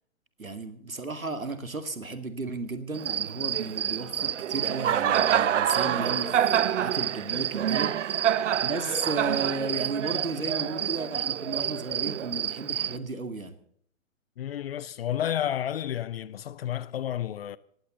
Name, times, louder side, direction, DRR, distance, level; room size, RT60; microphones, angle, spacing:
voice 1, 0.4-13.6, right 3 dB, 90° right, 2.3 m, -34 dB
Cricket, 2.9-13.0, right 10 dB, 60° right, 0.8 m, -27 dB
voice 2, 14.4-17.6, left 10 dB, 45° left, 0.7 m, -31 dB
18.5 x 16.0 x 4.0 m
figure-of-eight pair, 120°, 40 cm